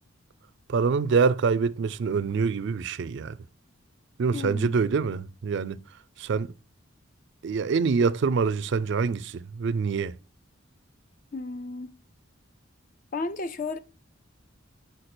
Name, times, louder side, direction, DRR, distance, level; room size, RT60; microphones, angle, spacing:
voice 1, 0.7-3.4 4.2-5.8 6.2-6.5 7.4-10.2, right 5 dB, 60° right, 0.4 m, -25 dB
voice 2, 4.3-4.7 11.3-12.0 13.1-13.8, left 3 dB, 40° left, 0.4 m, -33 dB
6.5 x 4.6 x 4.3 m
head